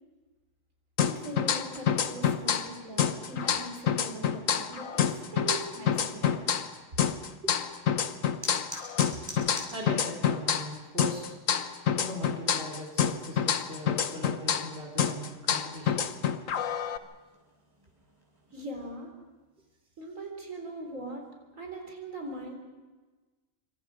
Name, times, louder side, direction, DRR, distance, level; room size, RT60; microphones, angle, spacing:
sound 1, 1.0-2.7 3.0-6.7 7.0-10.7 11.0-14.7 15.0-17.0, left 8 dB, 80° left, 1.4 m, -28 dB
voice 1, 1.0-6.5 18.5-19.1 20.0-21.2 21.6-22.5, right 1 dB, 80° right, 2 dB, 4.4 m, -40 dB
sound 2, 7.4-18.5, equal, 15° right, 6.2 m, -50 dB
voice 2, 9.7-11.4 11.9-16.1, equal, 50° right, -2 dB, 3.7 m, -40 dB
27.0 x 25.5 x 5.0 m, 1.3 s
omnidirectional pair, 1.4 m